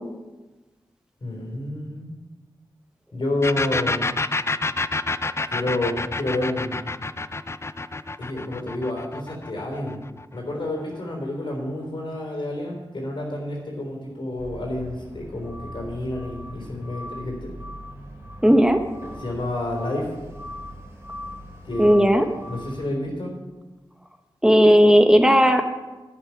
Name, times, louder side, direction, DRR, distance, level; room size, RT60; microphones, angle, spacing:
voice 1, 1.2-2.1 3.1-4.1 5.5-6.9 8.2-10.0 10.3-17.5 19.2-20.1 21.6-22.1 22.5-23.3, left 1 dB, 65° left, 0 dB, 3.8 m, -29 dB
sound 1, 3.4-10.9, left 3 dB, 30° left, 0.4 m, -28 dB
sound 2, 14.4-22.8, equal, 25° right, 2.6 m, -40 dB
voice 2, 18.4-18.8 21.8-22.3 24.4-25.6, equal, 10° right, 6 dB, 1.0 m, -15 dB
11.0 x 9.0 x 5.9 m, 1.2 s
wide cardioid pair, 75°, 9 cm